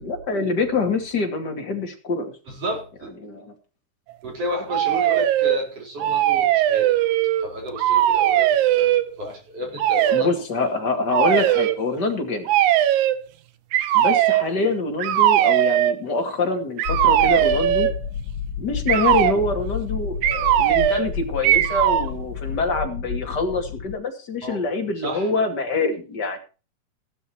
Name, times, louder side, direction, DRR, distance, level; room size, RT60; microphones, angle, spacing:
voice 1, 0.0-2.3 3.2-3.5 10.1-12.5 13.9-17.9 18.6-26.4, left 3 dB, 35° left, 4 dB, 2.6 m, -25 dB
voice 2, 2.5-3.1 4.2-6.9 7.4-10.4 24.4-24.6 25.0-25.3, equal, 50° right, 2 dB, 5.3 m, -32 dB
sound 1, 4.7-5.6 6.0-7.5 7.8-9.1 9.8-10.3 11.1-11.8 12.5-13.2 13.7-14.5 15.0-16.0 16.8-18.0 18.9-19.4 20.2-21.1 21.4-22.1, right 12 dB, 80° right, 2.2 m, -19 dB
sound 2, 16.9-24.0, left 6 dB, 75° left, 1.1 m, -30 dB
15.0 x 12.5 x 2.9 m, 0.33 s
omnidirectional pair, 3.5 m